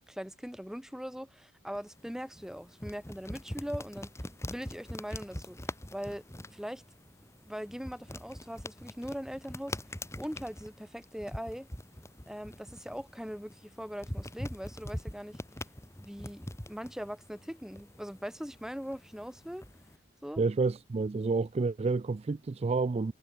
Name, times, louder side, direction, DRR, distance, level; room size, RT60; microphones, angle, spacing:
voice 1, 0.1-4.1 4.4-5.6 5.9-6.2 6.5-6.8 7.4-9.8 10.2-11.7 12.2-15.4 16.0-19.6 20.2-20.4, equal, 5° right, 3.9 m, -41 dB
sound 1, 1.7-20.0, left 1 dB, 15° left, 2.9 m, -44 dB
voice 2, 20.4-23.1, right 3 dB, 30° right, 0.4 m, -29 dB
head